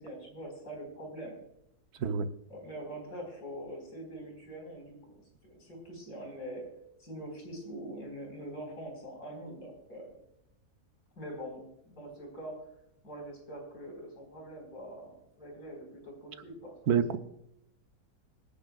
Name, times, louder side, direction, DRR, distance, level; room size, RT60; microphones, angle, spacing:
voice 1, 0.0-1.4 2.5-6.7 7.0-10.1 11.2-12.6 13.0-17.2, right 1 dB, 75° left, 1 dB, 5.1 m, -44 dB
voice 2, 16.9-17.2, right 7 dB, 75° right, 9 dB, 1.3 m, -26 dB
25.5 x 10.5 x 2.3 m, 0.79 s
omnidirectional pair, 1.7 m